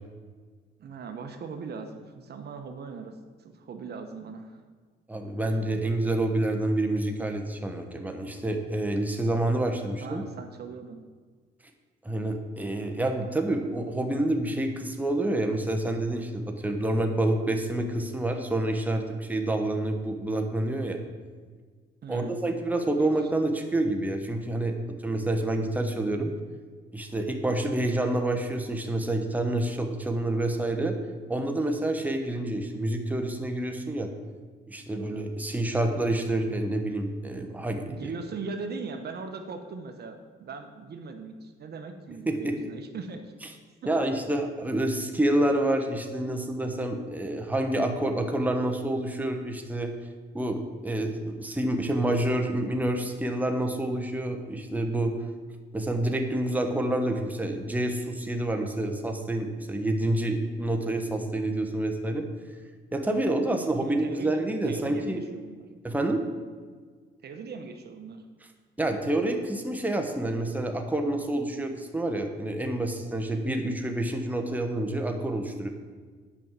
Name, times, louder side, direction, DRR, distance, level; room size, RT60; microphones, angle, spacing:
voice 1, 0.8-3.1 3.4-4.6 10.0-11.0 22.0-22.3 23.0-23.1 37.8-43.3 43.8-43.9 63.5-65.6 67.2-68.2, right 4 dB, 55° right, 6 dB, 1.0 m, -39 dB
voice 2, 5.1-10.2 12.0-21.0 22.1-26.3 26.9-30.9 31.3-34.1 34.7-38.1 42.3-42.5 43.4-43.5 43.9-49.9 50.3-55.1 55.7-62.2 62.9-65.2 65.8-66.2 68.8-75.7, right 1 dB, 10° right, 4 dB, 1.2 m, -28 dB
8.4 x 5.4 x 7.5 m, 1.5 s
cardioid pair, 90°, 20 cm